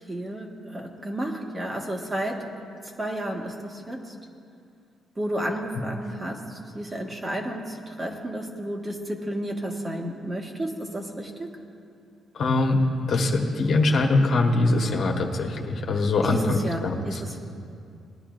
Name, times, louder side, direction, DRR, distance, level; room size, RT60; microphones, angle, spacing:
voice 1, 0.0-2.5 3.0-4.1 5.2-11.6 16.2-17.4, right 1 dB, 25° right, 1 dB, 1.6 m, -32 dB
voice 2, 12.3-12.8 13.1-17.2, left 2 dB, 60° left, 1 dB, 1.5 m, -23 dB
20.0 x 10.5 x 2.6 m, 2.4 s
cardioid pair, 90°, 0 cm